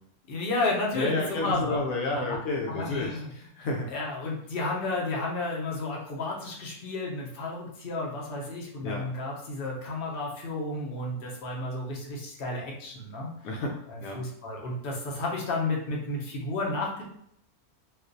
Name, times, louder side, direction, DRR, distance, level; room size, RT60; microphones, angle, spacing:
voice 1, 0.3-1.8 2.3-2.4 2.8-3.3 3.9-13.3 13.9-17.0, left 2 dB, 45° left, -2 dB, 0.9 m, -32 dB
voice 2, 0.9-3.9 8.8-9.0 13.4-14.2, left 2 dB, 75° left, -1 dB, 1.0 m, -31 dB
4.2 x 2.4 x 2.6 m, 0.69 s
omnidirectional pair, 1.6 m